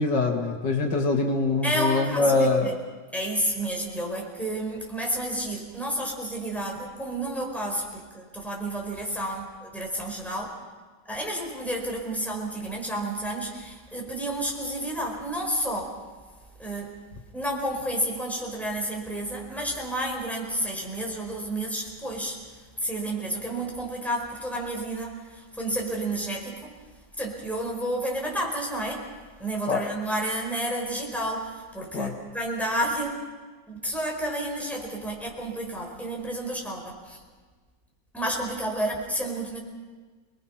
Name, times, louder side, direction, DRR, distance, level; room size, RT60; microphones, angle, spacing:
voice 1, 0.0-2.8 29.7-29.8 31.9-32.1, left 3 dB, 80° left, 2 dB, 2.5 m, -23 dB
voice 2, 1.6-2.7 3.1-10.5 11.1-16.0 16.6-16.9 17.3-22.4 22.8-26.7 27.2-29.1 29.4-33.1 33.7-37.2 38.1-39.6, right 1 dB, ahead, -1 dB, 4.6 m, -30 dB
29.0 x 20.0 x 5.8 m, 1.4 s
omnidirectional pair, 1.8 m